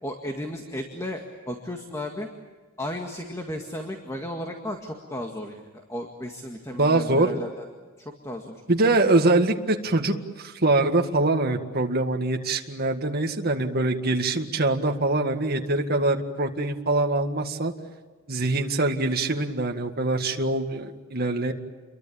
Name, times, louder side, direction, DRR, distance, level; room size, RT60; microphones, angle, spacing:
voice 1, 0.0-2.3 2.8-5.6 5.9-7.7 8.0-8.6, left 1 dB, 15° left, 3 dB, 2.0 m, -34 dB
voice 2, 6.7-7.3 8.7-17.7 18.3-21.5, right 2 dB, 45° right, 3 dB, 1.9 m, -24 dB
28.5 x 23.0 x 8.7 m, 1.4 s
head